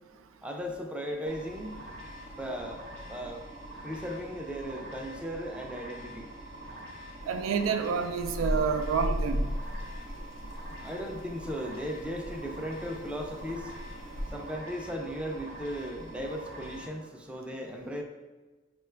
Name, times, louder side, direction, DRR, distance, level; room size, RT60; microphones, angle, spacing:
voice 1, 0.4-1.7 2.4-2.8 3.1-3.4 3.8-6.2 10.8-13.6 14.3-18.0, equal, 5° right, 1 dB, 0.3 m, -36 dB
sound 1, 1.3-16.9, right 1 dB, 65° right, 0.7 m, -45 dB
sound 2, 7.2-14.3, equal, 70° left, 0.6 m, -37 dB
voice 2, 7.3-9.5, right 6 dB, 90° right, 7 dB, 0.3 m, -28 dB
4.8 x 2.3 x 3.2 m, 1.3 s
head